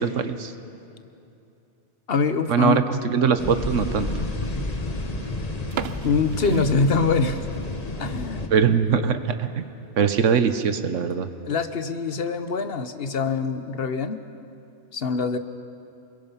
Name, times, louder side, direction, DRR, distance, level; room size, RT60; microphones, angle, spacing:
voice 1, 0.0-0.5 2.5-4.1 6.5-6.7 8.5-9.6 10.0-11.3, right 6 dB, 85° right, 10 dB, 1.3 m, -22 dB
voice 2, 2.1-2.9 6.0-7.4 8.0-8.5 11.0-11.1 11.4-14.2 14.9-15.4, left 5 dB, 55° left, 10 dB, 1.2 m, -24 dB
sound 1, 3.4-8.5, left 2 dB, 30° left, 1.5 m, -30 dB
sound 2, 5.6-7.5 7.9-8.0 8.5-8.7 9.1-9.2 9.5-9.6 10.3-10.6, right 9 dB, 60° right, 0.9 m, -36 dB
28.5 x 22.0 x 5.7 m, 2.7 s
omnidirectional pair, 1.3 m